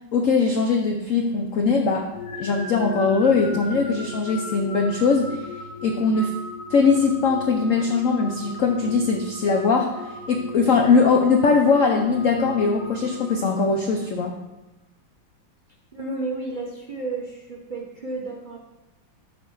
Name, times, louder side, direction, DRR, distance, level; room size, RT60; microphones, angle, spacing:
voice 1, 0.1-2.1 2.4-5.5 5.8-6.3 6.7-10.0 10.3-14.3, left 4 dB, 70° left, 3 dB, 0.7 m, -21 dB
sound 1, 2.1-14.1, left 2 dB, 45° left, 1.6 m, -37 dB
voice 2, 15.9-18.6, right 3 dB, 35° right, -2 dB, 0.8 m, -32 dB
8.6 x 4.4 x 6.4 m, 1.0 s
omnidirectional pair, 2.2 m